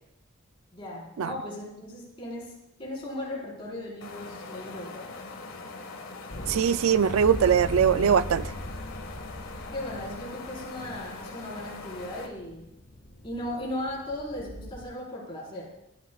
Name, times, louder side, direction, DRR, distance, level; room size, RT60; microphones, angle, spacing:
voice 1, 0.7-2.5 2.8-5.1 9.7-12.7 13.2-15.8, left 1 dB, 25° left, -4 dB, 4.5 m, -37 dB
sound 1, 4.0-12.3, left 3 dB, 80° left, 1.7 m, -42 dB
sound 2, 6.3-14.8, equal, 45° left, 1.3 m, -40 dB
voice 2, 6.5-8.5, right 7 dB, 85° right, 15 dB, 0.4 m, -21 dB
18.5 x 13.5 x 2.4 m, 0.86 s
head